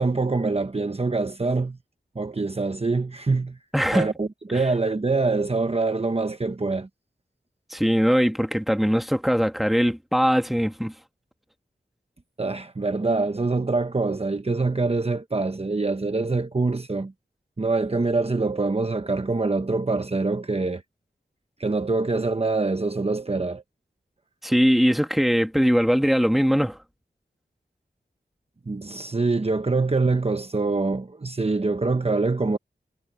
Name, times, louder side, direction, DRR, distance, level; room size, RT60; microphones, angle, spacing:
voice 1, 0.0-1.8 2.1-3.6 3.9-6.9 12.4-17.1 17.6-20.8 21.6-23.6 28.7-32.6, right 3 dB, 35° right, 1.0 m, -24 dB
voice 2, 3.7-4.1 7.7-10.9 24.4-26.8, equal, ahead, 2.0 m, -21 dB
wide cardioid pair, 70°, 19 cm